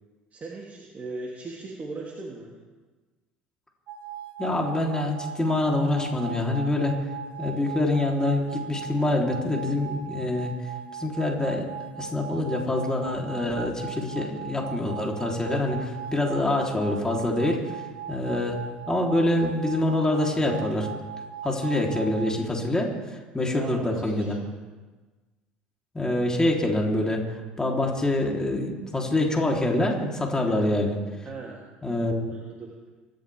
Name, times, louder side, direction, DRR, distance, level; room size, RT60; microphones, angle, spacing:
voice 1, 0.3-2.6 18.1-18.4 23.3-24.5 30.4-30.7 31.2-31.6 32.3-32.7, right 3 dB, 30° right, -3 dB, 3.1 m, -39 dB
sound 1, 3.9-22.4, right 7 dB, 55° right, 3.0 m, -39 dB
voice 2, 4.4-6.9 7.4-10.5 10.9-11.7 12.0-17.8 18.1-18.6 18.9-20.9 21.4-22.9 23.3-24.3 25.9-31.0 31.8-32.4, left 1 dB, 15° left, -1 dB, 3.7 m, -25 dB
25.5 x 13.5 x 3.6 m, 1.3 s
hypercardioid pair, 70°, 5 cm